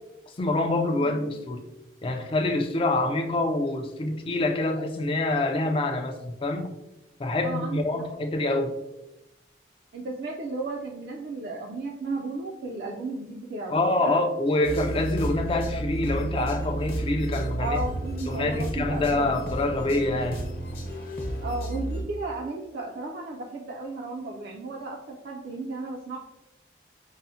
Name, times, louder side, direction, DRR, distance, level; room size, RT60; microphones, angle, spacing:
voice 1, 0.4-1.6 2.0-6.7 7.2-8.7 13.7-17.8 18.3-20.4, left 2 dB, 30° left, 4 dB, 0.3 m, -26 dB
voice 2, 7.4-8.0 9.9-14.2 17.6-19.4 21.4-26.2, right 2 dB, 60° right, -1 dB, 0.3 m, -34 dB
sound 1, 14.6-22.0, right 1 dB, 50° left, 0.9 m, -32 dB
5.4 x 2.0 x 2.7 m, 0.95 s
head